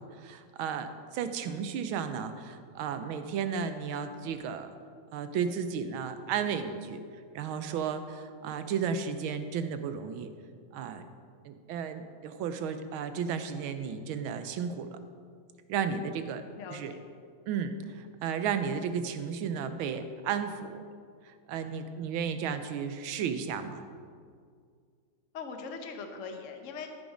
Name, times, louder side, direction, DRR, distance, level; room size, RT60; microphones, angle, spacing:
voice 1, 0.0-4.7 5.1-7.0 7.3-10.3 10.7-11.0 11.4-15.0 15.7-16.4 16.7-16.9 17.5-20.8 21.2-23.8, right 7 dB, 85° right, 9 dB, 1.5 m, -33 dB
voice 2, 25.3-26.9, left 5 dB, 50° left, 4 dB, 1.0 m, -40 dB
14.0 x 6.3 x 5.0 m, 2.1 s
omnidirectional pair, 2.2 m